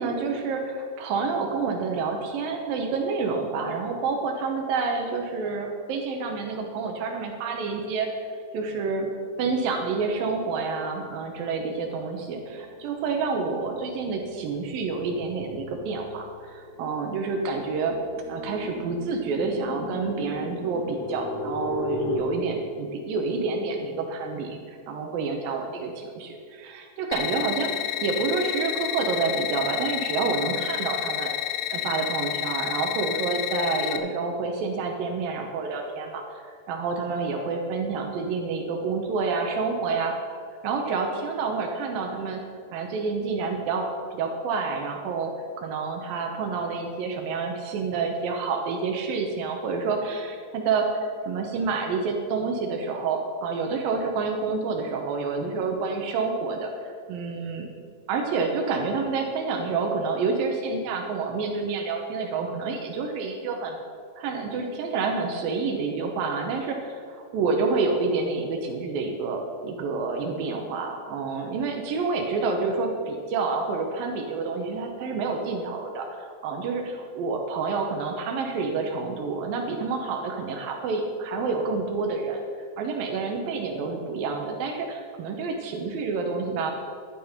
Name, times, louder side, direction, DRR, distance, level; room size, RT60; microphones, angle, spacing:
voice 1, 0.0-8.1 8.5-9.1 9.4-18.0 18.3-27.7 28.0-31.3 31.7-40.2 40.6-42.4 42.7-43.9 44.1-45.3 45.6-57.7 58.1-63.8 64.2-82.4 82.8-86.7, right 4 dB, 80° right, 2 dB, 2.8 m, -28 dB
sound 1, 12.6-12.9 13.3-22.2, left 3 dB, 65° left, 2.4 m, -37 dB
sound 2, 27.1-34.0, left 13 dB, 85° left, 2.5 m, -30 dB
11.5 x 10.0 x 5.0 m, 2.1 s
omnidirectional pair, 4.1 m